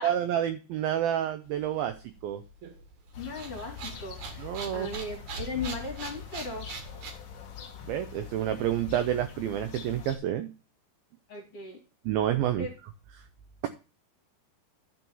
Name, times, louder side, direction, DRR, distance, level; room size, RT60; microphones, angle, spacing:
voice 1, 0.0-2.0 2.2-2.4 4.4-4.9 7.9-10.5 12.1-12.7, right 11 dB, 80° right, 10 dB, 2.2 m, -29 dB
sound 1, 1.5-7.1, right 4 dB, 55° right, 2.6 m, -42 dB
sound 2, 3.1-10.2, left 7 dB, 65° left, 1.4 m, -43 dB
voice 2, 3.2-6.7 11.3-11.8 12.6-12.7, left 3 dB, 40° left, -2 dB, 3.1 m, -37 dB
11.5 x 4.6 x 5.4 m, 0.32 s
omnidirectional pair, 4.9 m